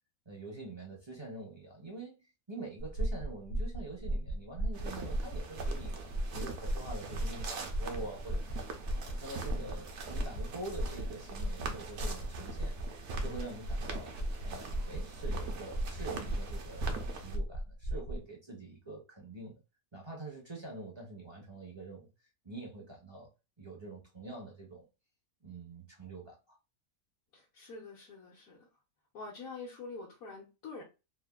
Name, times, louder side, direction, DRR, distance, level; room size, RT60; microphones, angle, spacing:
voice 1, 0.3-2.2 2.5-6.0 6.3-8.7 9.2-12.8 13.2-14.1 14.4-16.9 17.2-19.6 19.9-22.1 22.4-23.3 23.6-24.9 25.4-26.6, right 2 dB, 35° right, 0.4 m, -45 dB
sound 1, 2.8-18.2, right 1 dB, 60° left, 0.6 m, -36 dB
sound 2, 4.7-17.4, right 4 dB, 65° right, 0.8 m, -43 dB
voice 2, 27.3-28.7 29.1-30.8, left 3 dB, 80° left, 1.2 m, -46 dB
3.2 x 2.1 x 2.2 m
omnidirectional pair, 1.5 m